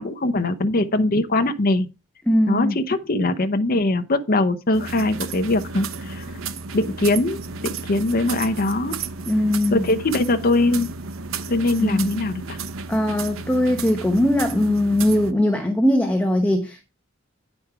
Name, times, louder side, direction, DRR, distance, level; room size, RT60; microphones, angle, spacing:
voice 1, 0.0-1.9 2.5-6.3 6.7-7.4 7.6-8.9 9.7-10.9 11.5-12.6, left 2 dB, 45° left, 0.7 m, -21 dB
voice 2, 2.3-2.8 9.3-9.8 11.8-12.1 12.9-16.8, left 1 dB, 5° left, 1.0 m, -20 dB
sound 1, 4.7-15.3, right 4 dB, 85° right, 0.8 m, -33 dB
9.3 x 5.2 x 4.7 m
head